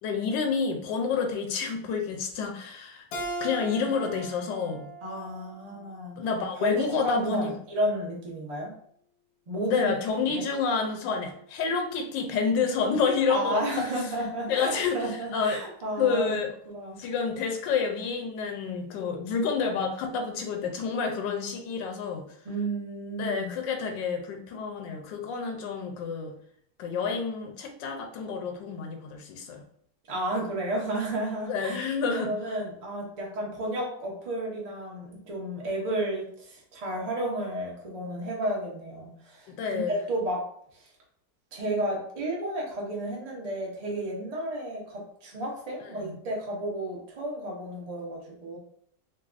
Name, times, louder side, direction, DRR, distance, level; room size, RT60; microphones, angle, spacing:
voice 1, 0.0-3.1 3.4-4.9 6.2-7.5 9.7-13.8 14.5-15.6 16.0-16.5 17.0-22.3 23.2-26.4 26.8-29.6 31.4-32.3 39.6-39.9 45.9-46.2, left 5 dB, 90° left, 3 dB, 1.3 m, -29 dB
Keyboard (musical), 3.1-6.3, right 2 dB, 65° left, 0.9 m, -39 dB
voice 2, 5.0-6.2 6.6-8.7 9.5-9.9 10.3-10.4 13.3-16.3 16.7-17.0 22.4-23.5 30.1-40.5 40.7-40.9 41.5-48.6, right 1 dB, 80° right, -2 dB, 0.3 m, -32 dB
3.9 x 2.3 x 2.4 m, 0.64 s
omnidirectional pair, 1.9 m